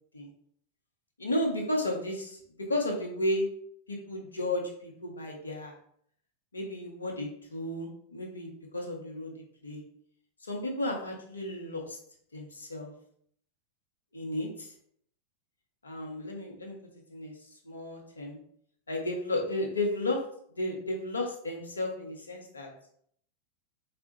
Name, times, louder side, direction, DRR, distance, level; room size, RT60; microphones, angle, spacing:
voice 1, 1.2-2.4 2.7-3.5 3.9-5.7 6.5-9.3 9.6-9.8 10.5-12.0 12.3-12.9 14.1-14.7 15.8-16.8 17.1-17.3 17.6-18.4 18.9-20.2 20.5-22.7, left 1 dB, 75° left, 0 dB, 0.6 m, -33 dB
3.4 x 2.1 x 2.7 m, 0.65 s
figure-of-eight pair, 90°, 0 cm